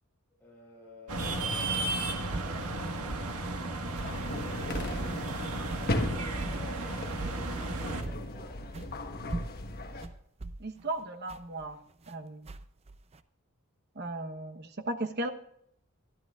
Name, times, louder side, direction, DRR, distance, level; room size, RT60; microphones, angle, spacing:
voice 1, 0.4-3.1 4.0-5.3 6.0-8.6, left 1 dB, 10° left, -4 dB, 6.4 m, -52 dB
sound 1, 1.1-8.0, right 2 dB, 85° right, 1.6 m, -34 dB
carpet footsteps, 2.3-2.6 3.1-3.3 3.9-4.2 4.7-5.0 5.7-5.9 6.4-6.6 7.2-7.5 8.0-8.3 8.7-8.9 9.3-12.1 12.5-13.2, right 2 dB, 30° right, 0.6 m, -39 dB
sound 2, 4.0-10.0, left 1 dB, 45° left, 1.3 m, -37 dB
voice 2, 10.6-11.8 12.1-12.5 13.9-15.3, right 2 dB, 50° right, 8 dB, 1.1 m, -36 dB
24.5 x 11.5 x 2.4 m, 0.70 s
head